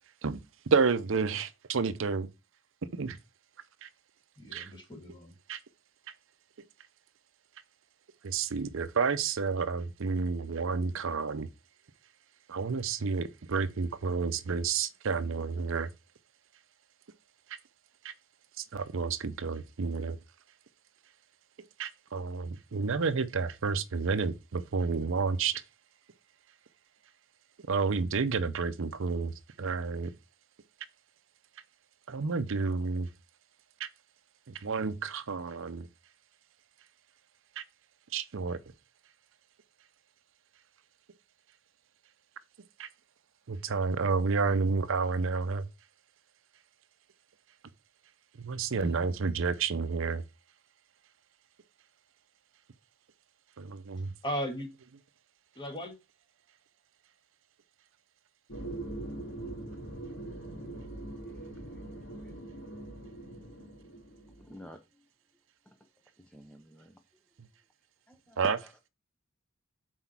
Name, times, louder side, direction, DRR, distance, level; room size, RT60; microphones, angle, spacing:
voice 1, 0.7-2.3 2.9-3.2 3.8-3.9 4.5-4.7 5.5-5.6 8.2-11.5 12.5-15.9 18.0-18.1 18.6-20.2 21.8-25.6 27.7-30.1 32.1-33.1 33.8-33.9 34.5-35.9 37.6-37.7 38.1-38.6 42.8-42.9 43.5-45.6 48.4-50.2 53.6-54.1 68.4-68.6, right 4 dB, 70° right, 0.6 m, -30 dB
voice 2, 4.4-5.3 48.7-49.0 54.2-54.7 55.6-55.9, equal, 25° left, 2.0 m, -37 dB
sound 1, 58.5-64.5, right 2 dB, 75° left, 2.3 m, -42 dB
voice 3, 64.4-64.8 66.2-67.0 68.1-68.7, equal, 5° left, 0.7 m, -47 dB
5.9 x 4.4 x 5.9 m
head